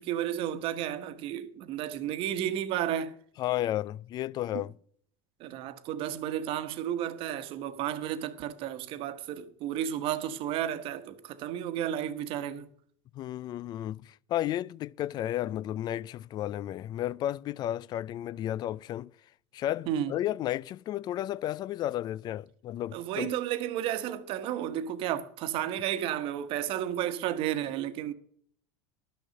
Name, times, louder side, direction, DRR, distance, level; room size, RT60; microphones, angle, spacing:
voice 1, 0.0-3.2 4.5-4.6 5.4-12.7 19.9-20.1 22.9-28.1, right 11 dB, 50° right, 1.1 m, -32 dB
voice 2, 3.4-4.7 13.1-19.1 19.5-23.3, left 13 dB, 40° left, 0.3 m, -33 dB
12.0 x 6.4 x 7.5 m
supercardioid pair, 105°, 11 cm